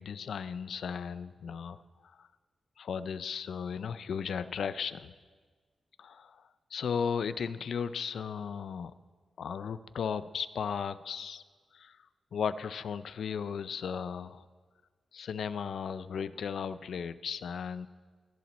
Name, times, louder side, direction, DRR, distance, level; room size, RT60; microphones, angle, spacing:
voice 1, 0.0-2.3 2.8-5.1 6.0-6.4 6.7-8.9 9.4-11.4 11.7-12.0 12.3-14.5 15.1-17.9, left 7 dB, 75° left, 15 dB, 0.3 m, -36 dB
17.0 x 7.3 x 4.2 m, 1.5 s
wide cardioid pair, 130°, 0 cm